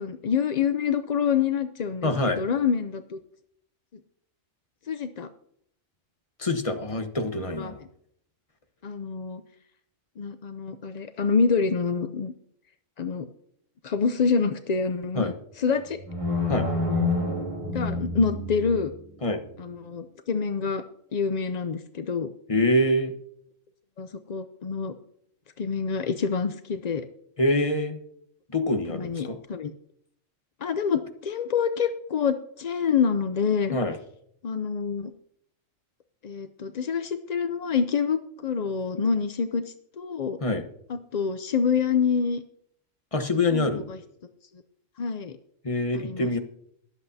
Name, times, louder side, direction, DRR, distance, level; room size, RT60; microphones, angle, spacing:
voice 1, 0.0-3.2 4.9-5.3 7.4-7.8 8.8-9.4 10.2-12.3 13.0-13.3 13.8-16.0 17.7-18.9 19.6-20.8 21.1-22.3 24.0-24.9 25.6-27.0 28.9-29.7 30.6-33.8 34.4-35.1 36.2-40.4 40.9-42.4 43.5-44.0 45.0-45.4 45.9-46.4, left 6 dB, 50° left, 9 dB, 0.5 m, -27 dB
voice 2, 2.0-2.4 6.4-7.8 15.2-15.3 16.5-16.7 19.2-19.4 22.5-23.1 27.4-28.0 28.5-29.4 33.7-34.0 40.4-40.6 43.1-43.9 45.6-46.4, left 1 dB, 25° left, 6 dB, 1.1 m, -25 dB
sound 1, 15.9-18.9, left 2 dB, 70° right, 3.8 m, -28 dB
22.5 x 7.9 x 2.7 m, 0.70 s
omnidirectional pair, 1.4 m